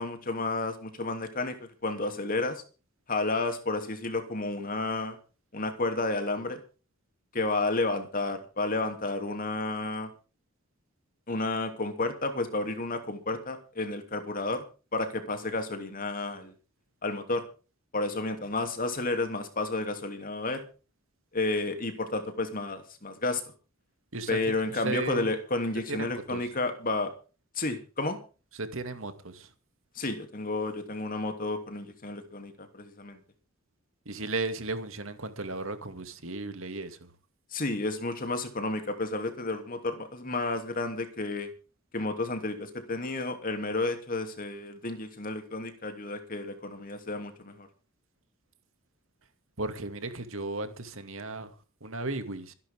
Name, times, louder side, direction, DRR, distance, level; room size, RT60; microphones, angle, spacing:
voice 1, 0.0-2.6 3.1-5.2 5.5-6.6 7.3-10.1 11.3-14.6 14.9-16.5 17.0-17.4 17.9-20.6 21.3-23.4 24.3-27.1 27.5-28.2 29.9-33.2 37.5-41.5 41.9-47.7, left 2 dB, 40° left, 3.0 m, -31 dB
voice 2, 24.7-25.3 25.9-26.4 28.6-29.5 34.1-37.1 49.6-51.5 51.8-52.5, right 2 dB, 65° right, 2.4 m, -35 dB
26.0 x 11.0 x 3.7 m
head